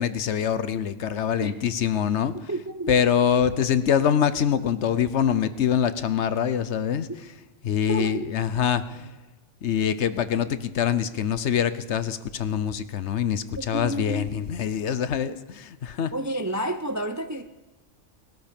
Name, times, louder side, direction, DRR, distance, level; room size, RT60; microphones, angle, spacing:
voice 1, 0.0-2.6 2.9-7.4 7.6-9.1 9.6-16.1, left 8 dB, 65° left, 13 dB, 1.0 m, -24 dB
voice 2, 2.3-3.0 7.9-8.3 13.6-14.3 16.1-17.4, right 1 dB, 25° right, 8 dB, 0.4 m, -30 dB
19.5 x 13.5 x 5.2 m, 1.1 s
omnidirectional pair, 1.3 m